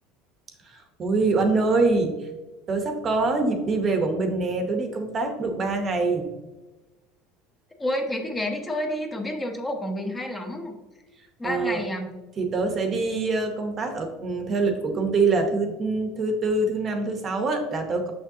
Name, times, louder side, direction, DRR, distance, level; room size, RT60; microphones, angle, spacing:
voice 1, 0.7-2.1 2.7-6.3 11.4-11.8 12.4-18.1, right 3 dB, 25° right, 5 dB, 0.8 m, -24 dB
voice 2, 7.8-10.8 11.4-12.2, left 1 dB, 10° left, 4 dB, 0.7 m, -29 dB
6.3 x 6.2 x 2.7 m, 1.1 s
cardioid pair, 165°, 0 cm